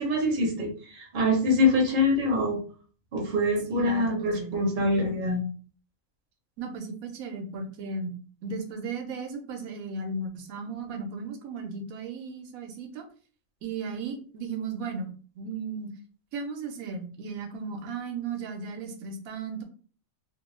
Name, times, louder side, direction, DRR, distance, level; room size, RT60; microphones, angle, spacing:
voice 1, 0.0-2.6 3.1-5.4, left 1 dB, 50° right, 1 dB, 0.7 m, -24 dB
voice 2, 3.7-4.5 6.6-8.1 8.4-13.1 13.6-15.1 15.4-15.9 16.3-19.6, right 4 dB, 85° right, 5 dB, 1.1 m, -35 dB
2.6 x 2.1 x 3.0 m, 0.40 s
omnidirectional pair, 1.4 m